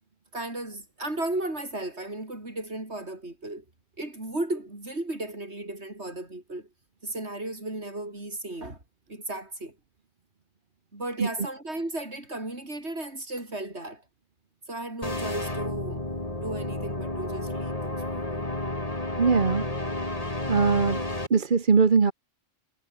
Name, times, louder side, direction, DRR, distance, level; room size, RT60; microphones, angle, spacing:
voice 1, 0.3-3.6 4.0-6.7 7.0-8.8 9.1-9.8 10.9-14.0 14.7-16.1 16.3-18.5, right 2 dB, 65° right, 6.1 m, -35 dB
sound 1, 15.0-21.3, left 1 dB, 30° left, 3.8 m, -31 dB
voice 2, 19.1-19.6 20.5-21.0 21.3-22.1, right 5 dB, 45° right, 1.4 m, -21 dB
omnidirectional pair, 1.2 m